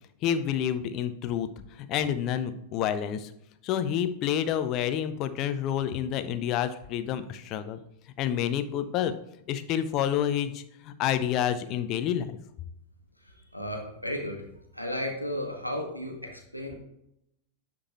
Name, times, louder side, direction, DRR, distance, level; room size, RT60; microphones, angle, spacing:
voice 1, 0.2-1.5 1.8-3.3 3.6-7.8 8.2-9.1 9.5-12.4, left 10 dB, 40° left, 11 dB, 0.5 m, -28 dB
voice 2, 13.2-14.5 14.7-16.7, left 1 dB, 90° right, 2 dB, 1.2 m, -34 dB
9.8 x 3.7 x 3.0 m, 0.78 s
figure-of-eight pair, 90°, 0 cm